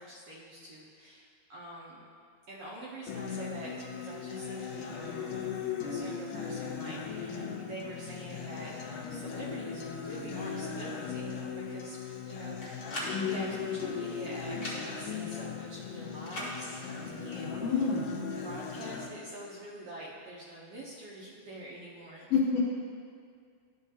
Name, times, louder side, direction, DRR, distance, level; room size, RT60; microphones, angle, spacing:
voice 1, 0.0-2.0 2.5-8.7 9.1-12.0 12.3-12.6 12.9-16.8 17.2-17.9 18.4-22.2, right 1 dB, 70° right, -6 dB, 1.5 m, -45 dB
Acoustic guitar, 3.1-19.1, left 6 dB, 90° left, 2.2 m, -38 dB
sound 1, 12.6-13.1 14.5-14.8 16.2-16.5, equal, 40° left, 1.1 m, -38 dB
voice 2, 13.1-13.5 17.4-18.0 22.3-22.6, left 5 dB, 65° left, -4 dB, 1.7 m, -29 dB
12.5 x 4.9 x 2.7 m, 2.2 s
omnidirectional pair, 3.5 m